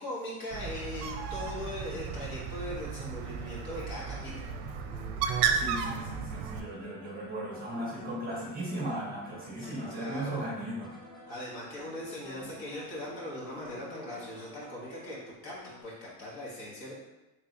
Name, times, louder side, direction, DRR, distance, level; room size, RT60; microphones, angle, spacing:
voice 1, 0.0-4.5 9.6-10.5 11.3-15.2 15.4-15.5 15.8-16.9, left 1 dB, 55° left, -6 dB, 1.4 m, -40 dB
Bird, 0.5-6.6, right 6 dB, 70° right, 0.5 m, -34 dB
sound 1, 3.6-15.8, equal, 10° left, 0.5 m, -51 dB
voice 2, 5.6-10.9 12.4-12.5, right 1 dB, 20° right, -6 dB, 0.8 m, -37 dB
3.2 x 2.4 x 4.0 m, 1.0 s
cardioid pair, 155°, 43 cm